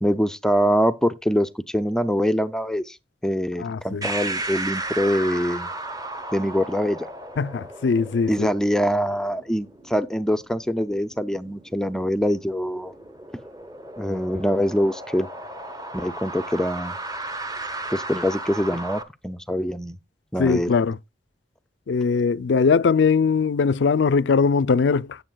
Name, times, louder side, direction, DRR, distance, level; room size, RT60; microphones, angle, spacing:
voice 1, 0.0-3.0 3.2-5.7 6.3-7.1 8.3-12.9 14.0-15.3 15.9-16.9 17.9-20.0 20.3-20.7, equal, 5° left, 0.4 m, -24 dB
voice 2, 3.6-4.1 7.4-8.5 20.4-21.0 21.9-25.2, left 5 dB, 70° left, 0.4 m, -20 dB
sound 1, 4.0-19.0, right 2 dB, 20° right, 0.9 m, -35 dB
16.5 x 7.0 x 2.2 m
head